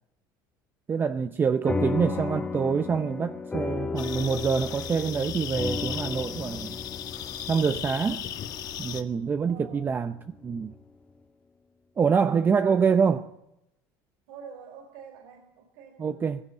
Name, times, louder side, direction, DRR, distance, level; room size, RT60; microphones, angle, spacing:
voice 1, 0.9-6.8 7.5-8.2 8.8-10.1 10.4-10.7 12.0-13.2 16.0-16.4, right 6 dB, 25° right, 0.8 m, -25 dB
voice 2, 1.4-2.4 9.4-9.9 12.1-13.0 14.3-16.2, right 7 dB, 85° right, 3.8 m, -47 dB
sound 1, 1.7-10.4, left 4 dB, 15° left, 1.3 m, -34 dB
sound 2, 4.0-9.0, left 10 dB, 45° left, 1.7 m, -36 dB
19.0 x 16.0 x 9.2 m
cardioid pair, 145°, 9 cm